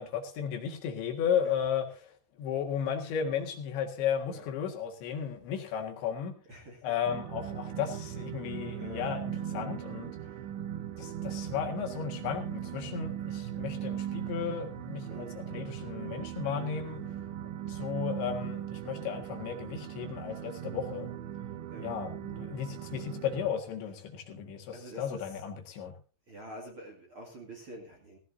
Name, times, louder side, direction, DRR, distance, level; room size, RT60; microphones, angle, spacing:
voice 1, 0.0-6.3 6.8-10.1 11.0-17.0 17.7-21.1 21.8-25.9, left 8 dB, 70° left, 3 dB, 4.0 m, -34 dB
voice 2, 6.4-7.0 8.7-9.1 15.1-15.5 21.7-22.0 23.8-24.0 24.7-25.5 26.3-28.2, right 1 dB, 40° right, 0 dB, 2.1 m, -47 dB
sound 1, 7.1-23.5, right 10 dB, 80° right, 3.2 m, -39 dB
17.0 x 16.0 x 2.7 m, 0.34 s
omnidirectional pair, 5.5 m